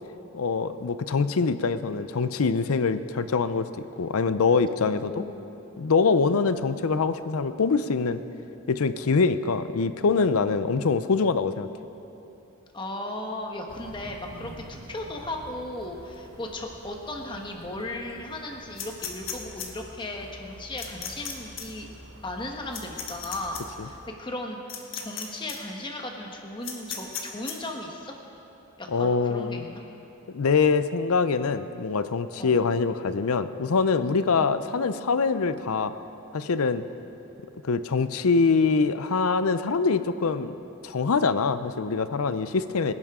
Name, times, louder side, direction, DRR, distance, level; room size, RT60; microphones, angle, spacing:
voice 1, 0.3-3.7 4.0-5.1 5.8-8.2 8.7-11.7 28.9-29.6 30.3-35.9 36.3-36.8 37.6-40.5 40.8-42.9, left 4 dB, 90° left, 12 dB, 0.6 m, -24 dB
voice 2, 4.8-5.5 12.7-21.9 22.2-28.1 28.8-29.8 32.3-32.6, left 1 dB, 20° left, 1 dB, 1.3 m, -36 dB
sound 1, 13.7-24.1, right 1 dB, 70° right, 1.1 m, -48 dB
sound 2, 18.8-19.7 20.8-21.3 21.6-21.7 22.7-23.6 24.7-25.2 25.5-25.6 26.6-27.5, left 8 dB, 60° left, 1.7 m, -34 dB
24.0 x 10.5 x 3.7 m, 2.9 s
head